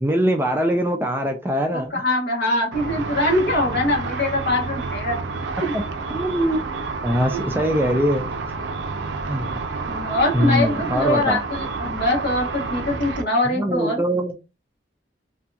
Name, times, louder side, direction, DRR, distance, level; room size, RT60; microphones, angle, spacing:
voice 1, 0.0-2.0 6.1-6.6 7.0-8.3 9.3-9.6 10.3-11.4 13.5-14.3, equal, 10° right, 0.3 m, -22 dB
voice 2, 1.7-5.2 5.6-5.7 7.3-7.4 9.9-14.0, left 1 dB, 60° left, 1.1 m, -23 dB
Car / Traffic noise roadway noise / Engine, 2.7-13.2, right 4 dB, 85° right, 0.4 m, -29 dB
2.7 x 2.6 x 2.3 m
head